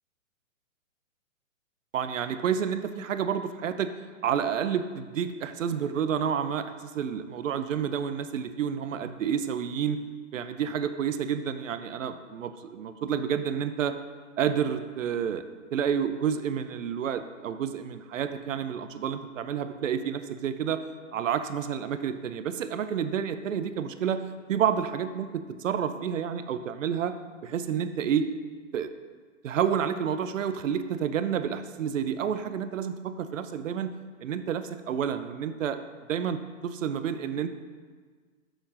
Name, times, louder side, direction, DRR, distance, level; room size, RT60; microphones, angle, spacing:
voice 1, 1.9-3.9 4.2-10.0 10.3-13.9 14.4-20.8 21.1-24.2 24.5-27.2 27.4-28.3 28.7-28.9 29.4-33.9 34.2-35.8 36.1-37.5, right 8 dB, 65° right, 10 dB, 0.7 m, -29 dB
7.0 x 5.1 x 5.7 m, 1.5 s
hypercardioid pair, 170°, 41 cm